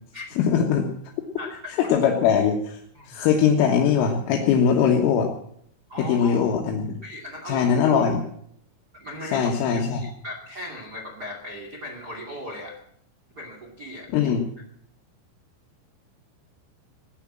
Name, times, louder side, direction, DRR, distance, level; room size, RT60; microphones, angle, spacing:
voice 1, 0.4-0.9 1.8-2.8 3.1-5.3 6.0-7.0 7.5-8.2 9.3-10.0 14.1-14.5, left 7 dB, 80° left, 1 dB, 4.0 m, -21 dB
voice 2, 1.4-1.9 2.9-3.3 5.9-6.5 7.0-7.7 8.9-12.8 13.4-14.3, left 1 dB, 35° right, 0 dB, 1.7 m, -38 dB
18.5 x 10.5 x 7.5 m, 0.68 s
omnidirectional pair, 5.8 m